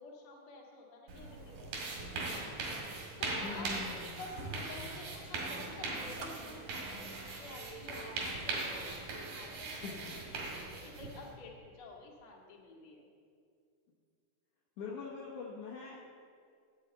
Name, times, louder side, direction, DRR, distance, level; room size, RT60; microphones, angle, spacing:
voice 1, 0.0-3.7 4.2-9.7 10.2-13.1, left 3 dB, 45° left, -2 dB, 2.3 m, -51 dB
sound 1, 1.1-11.3, right 3 dB, 90° right, 3.9 m, -40 dB
voice 2, 3.4-4.1 9.8-10.1 14.8-16.1, left 4 dB, 65° left, -3 dB, 2.3 m, -43 dB
sound 2, 6.2-8.2 8.5-8.6, right 3 dB, 70° right, 1.2 m, -51 dB
12.0 x 6.3 x 8.1 m, 2.3 s
omnidirectional pair, 4.3 m